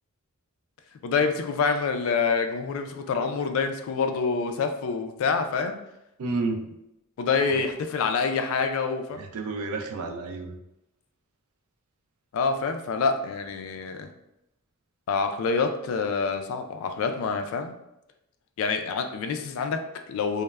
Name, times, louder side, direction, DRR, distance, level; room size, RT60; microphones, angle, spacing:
voice 1, 1.0-5.8 7.2-9.2 12.3-14.1 15.1-17.7 18.6-20.4, left 5 dB, 65° left, 7 dB, 0.3 m, -26 dB
voice 2, 6.2-6.7 7.5-7.7 9.1-10.5, right 3 dB, 75° right, 5 dB, 0.4 m, -31 dB
3.1 x 2.0 x 2.2 m, 0.85 s
head